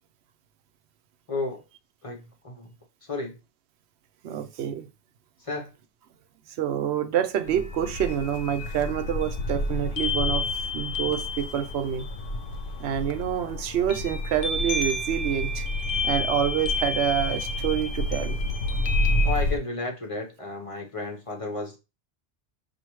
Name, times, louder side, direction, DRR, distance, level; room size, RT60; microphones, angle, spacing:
voice 1, 1.3-1.6 2.0-2.7 3.0-3.4 5.4-5.7 19.2-21.8, left 3 dB, 35° left, 0.9 m, -33 dB
voice 2, 4.2-4.9 6.6-10.5 10.7-12.1 12.8-15.6 16.0-18.4, right 10 dB, 85° right, 0.9 m, -27 dB
sound 1, 7.5-19.6, left 2 dB, 65° left, 0.7 m, -29 dB
5.7 x 2.6 x 3.1 m
omnidirectional pair, 1.1 m